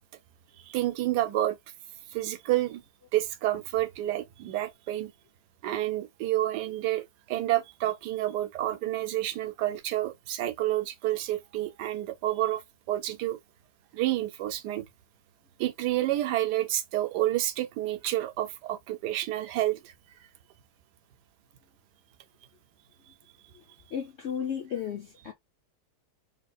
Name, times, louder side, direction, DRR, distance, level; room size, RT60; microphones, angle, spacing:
voice 1, 0.6-1.6 2.1-2.8 3.1-5.1 5.6-12.6 12.9-13.4 13.9-14.9 15.6-19.9, right 14 dB, 70° right, 1.2 m, -29 dB
voice 2, 23.9-25.3, left 8 dB, 75° left, 0.6 m, -34 dB
4.2 x 2.8 x 2.3 m
omnidirectional pair, 1.9 m